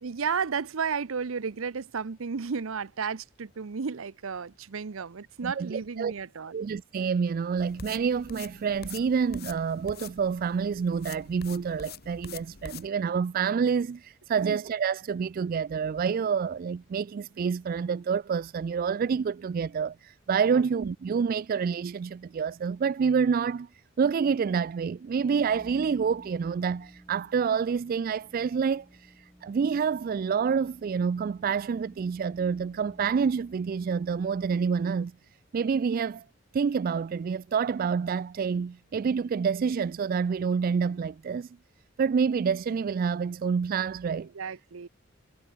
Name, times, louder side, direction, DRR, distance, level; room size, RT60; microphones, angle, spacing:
voice 1, 0.0-6.6 14.4-14.6 20.5-20.6 44.3-44.9, right 5 dB, 70° right, 0.7 m, -33 dB
voice 2, 5.4-6.1 6.5-23.7 24.0-35.1 35.5-36.2 36.5-41.5 42.0-44.3, right 6 dB, 45° right, 0.3 m, -28 dB
sound 1, 7.6-12.9, left 5 dB, 45° left, 2.0 m, -45 dB
sound 2, 25.1-35.0, equal, ahead, 7.9 m, -55 dB
head